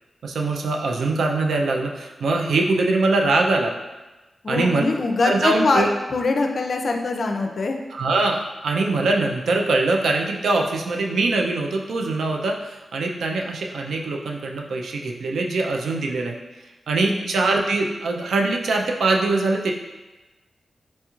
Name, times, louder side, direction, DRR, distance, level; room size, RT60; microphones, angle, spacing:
voice 1, 0.2-3.8 4.5-4.8 5.2-5.9 7.9-16.4 16.9-19.7, right 3 dB, 85° right, 1 dB, 0.4 m, -22 dB
voice 2, 4.4-7.8 17.0-17.3, left 3 dB, 60° left, 4 dB, 0.4 m, -23 dB
4.2 x 2.9 x 2.3 m, 1.1 s
cardioid pair, 65°, 0 cm